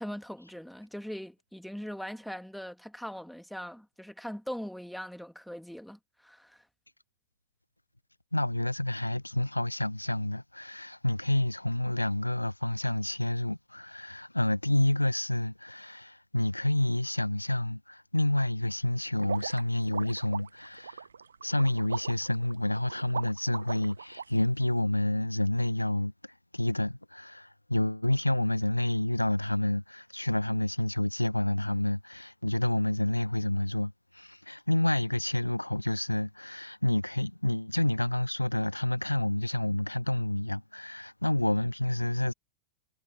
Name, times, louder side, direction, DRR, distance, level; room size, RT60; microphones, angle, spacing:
voice 1, 0.0-6.6, equal, ahead, 2.3 m, -41 dB
voice 2, 8.3-21.0 21.4-26.1 26.5-42.3, left 1 dB, 85° left, 0.5 m, -29 dB
sound 1, 19.2-24.2, right 6 dB, 70° right, 0.5 m, -39 dB
figure-of-eight pair, 90°, 0 cm